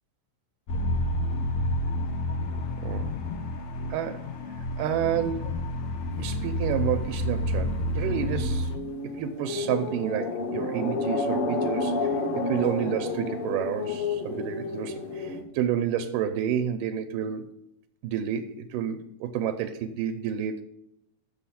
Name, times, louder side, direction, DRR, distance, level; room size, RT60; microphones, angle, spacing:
sound 1, 0.7-8.8, left 1 dB, 85° left, 1.2 m, -29 dB
voice 1, 3.9-4.3 4.8-5.6 6.2-8.7 9.0-17.5 18.0-20.6, right 9 dB, 85° right, 7 dB, 2.3 m, -30 dB
sound 2, 6.1-15.4, left 3 dB, 55° left, 1.7 m, -31 dB
8.1 x 7.0 x 5.7 m, 0.77 s
omnidirectional pair, 3.8 m